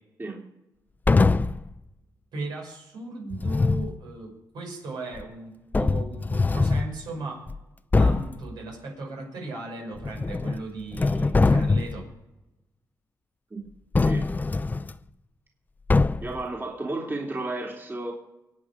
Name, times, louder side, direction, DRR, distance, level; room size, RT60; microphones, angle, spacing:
sound 1, 1.1-1.7 3.3-4.0 5.2-5.3 5.7-6.9 7.5-7.6 7.9-8.4 10.0-10.6 10.9-12.0 13.9-14.9 15.9-16.4, left 3 dB, 25° left, 0.6 m, -22 dB
voice 1, 2.3-7.4 7.9-12.1, right 3 dB, 80° right, 0 dB, 6.1 m, -37 dB
voice 2, 16.2-18.1, right 2 dB, 30° right, -1 dB, 3.2 m, -32 dB
24.0 x 9.2 x 5.0 m, 0.96 s
cardioid pair, 85°, 7 cm